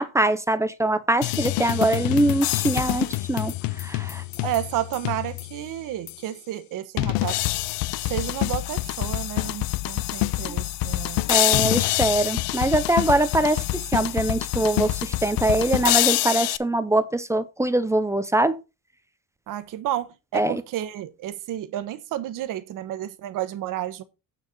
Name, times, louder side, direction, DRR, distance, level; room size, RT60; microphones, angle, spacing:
voice 1, 0.0-3.5 3.8-4.2 11.3-13.6 13.9-18.6 20.3-20.6, right 1 dB, 10° right, 0.5 m, -23 dB
sound 1, 1.2-5.6 6.1-6.2 7.0-16.6, left 18 dB, 70° left, 0.6 m, -26 dB
voice 2, 4.4-7.4 8.0-11.2 19.5-24.0, right 13 dB, 60° right, 1.2 m, -31 dB
9.3 x 4.6 x 5.3 m
cardioid pair, 135°, 36 cm